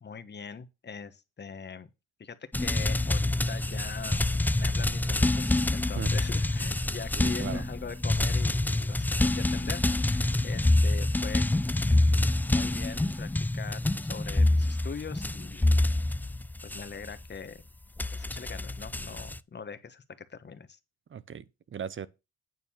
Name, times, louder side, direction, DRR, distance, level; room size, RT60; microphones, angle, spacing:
voice 1, 0.0-1.9 2.2-4.2 4.5-11.4 11.9-15.7 16.6-17.6 18.1-20.8, left 6 dB, 35° left, 1.4 m, -42 dB
sound 1, 2.5-17.3 18.0-19.4, left 2 dB, 5° left, 0.4 m, -27 dB
voice 2, 7.2-7.6 21.1-22.1, right 8 dB, 40° right, 0.9 m, -37 dB
9.3 x 4.4 x 7.3 m
cardioid pair, 90°, 30 cm